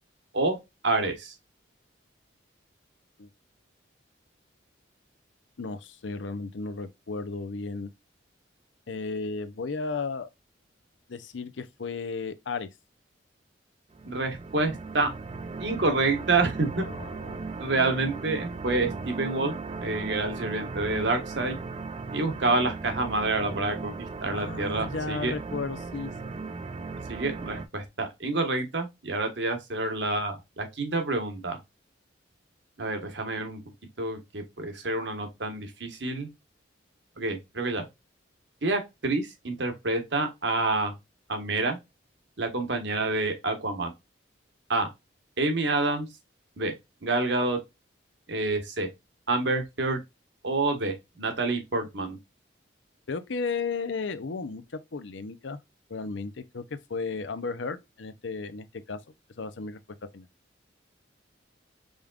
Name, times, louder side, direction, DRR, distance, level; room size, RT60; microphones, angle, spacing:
voice 1, 0.8-1.3 14.0-15.1 15.6-16.8 17.6-18.9 19.2-19.5 19.8-21.6 22.1-23.9 24.2-25.3 27.1-31.6 32.8-33.6 34.0-36.3 37.2-37.9 38.6-40.9 41.3-41.8 42.4-43.9 44.7-44.9 45.4-46.1 46.6-46.7 47.0-47.6 48.3-48.9 49.3-50.0 50.4-52.2, right 2 dB, 65° right, 1.3 m, -28 dB
voice 2, 5.6-7.9 8.9-10.3 11.1-12.7 16.8-17.5 24.3-26.1 53.1-55.6 55.9-56.6 56.9-59.0 59.4-59.8 60.1-60.3, left 4 dB, 75° left, 0.6 m, -34 dB
sound 1, 13.9-27.7, right 4 dB, 30° right, 0.4 m, -37 dB
5.0 x 3.5 x 2.4 m
head